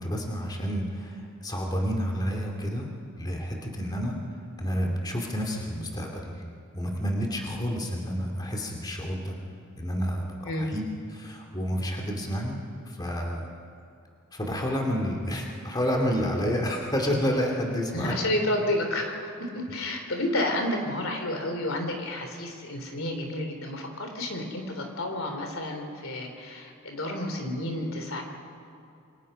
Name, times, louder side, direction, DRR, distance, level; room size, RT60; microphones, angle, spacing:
voice 1, 0.0-2.9 3.2-4.2 4.6-6.4 6.7-9.4 9.7-10.9 11.1-12.6 12.9-13.5 14.3-18.1, equal, 20° left, 1 dB, 2.6 m, -29 dB
voice 2, 17.9-28.2, left 1 dB, 70° left, 4 dB, 3.5 m, -30 dB
28.0 x 24.0 x 5.6 m, 2.8 s
head